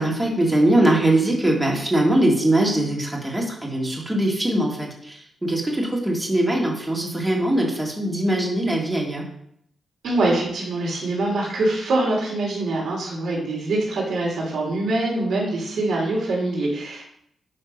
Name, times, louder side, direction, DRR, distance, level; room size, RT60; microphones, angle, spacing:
voice 1, 0.0-9.3, right 1 dB, 10° right, -1 dB, 2.1 m, -21 dB
voice 2, 10.0-17.0, right 2 dB, 80° right, -4 dB, 3.5 m, -24 dB
11.0 x 3.6 x 5.2 m, 0.70 s
cardioid pair, 100°, 0 cm